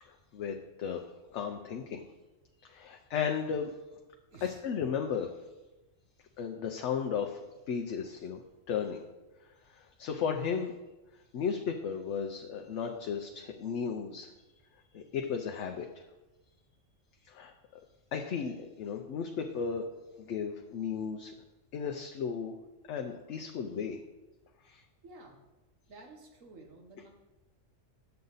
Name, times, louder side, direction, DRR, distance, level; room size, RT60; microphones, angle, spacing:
voice 1, 0.1-1.0 1.3-2.0 2.6-3.7 4.4-5.3 6.4-7.4 7.7-8.4 8.7-9.0 9.7-10.7 11.3-14.3 14.9-16.0 17.2-17.5 18.1-19.8 20.2-21.3 21.7-22.5 22.9-24.0 24.6-24.8, left 6 dB, 70° left, 3 dB, 0.9 m, -35 dB
voice 2, 25.0-25.4 25.9-27.1, right 2 dB, 80° right, 1 dB, 1.5 m, -52 dB
9.3 x 6.8 x 4.0 m, 1.1 s
omnidirectional pair, 1.3 m